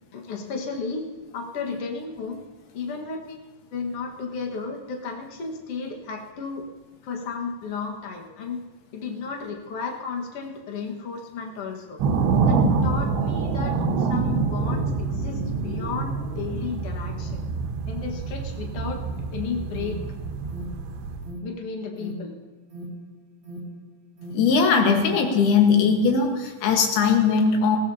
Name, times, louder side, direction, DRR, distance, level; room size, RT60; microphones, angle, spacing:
voice 1, 0.1-1.1 1.3-2.4 2.7-6.7 7.0-8.6 8.9-12.0 12.5-17.4 17.9-19.1 19.3-20.0 21.4-22.3, left 5 dB, 50° left, 1 dB, 2.0 m, -33 dB
sound 1, 12.0-21.3, right 4 dB, 85° right, 3.1 m, -26 dB
Alarm, 19.1-25.8, right 1 dB, 30° right, 2.8 m, -41 dB
voice 2, 24.3-27.8, left 5 dB, 75° left, 3 dB, 3.4 m, -19 dB
20.5 x 16.5 x 2.9 m, 1.2 s
omnidirectional pair, 4.7 m